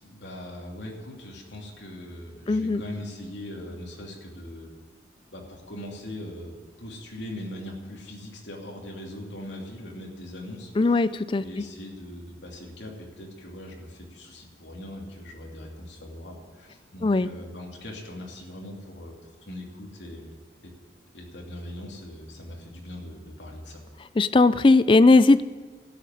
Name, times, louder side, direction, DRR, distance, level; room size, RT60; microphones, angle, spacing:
voice 1, 0.0-4.7 5.3-6.5 6.8-20.3 20.6-20.7 21.1-23.8, left 1 dB, 75° left, -1 dB, 2.9 m, -40 dB
voice 2, 2.5-2.8 10.8-11.4 17.0-17.3 24.2-25.5, left 3 dB, 25° left, 15 dB, 0.4 m, -18 dB
13.0 x 8.3 x 9.9 m, 1.5 s
head